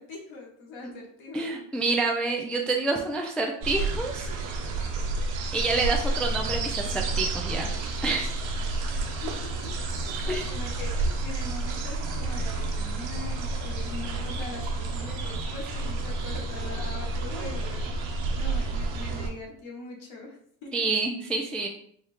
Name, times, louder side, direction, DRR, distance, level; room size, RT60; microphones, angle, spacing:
voice 1, 0.0-1.5 8.8-8.9 9.2-20.9, left 3 dB, 75° left, -1 dB, 1.4 m, -42 dB
voice 2, 1.3-4.3 5.5-7.7 8.0-8.3 10.3-10.5 20.7-21.7, right 3 dB, ahead, 1 dB, 0.3 m, -28 dB
sound 1, 3.6-19.3, right 3 dB, 70° right, 0.9 m, -30 dB
4.0 x 2.4 x 3.5 m, 0.63 s
cardioid pair, 95°, 48 cm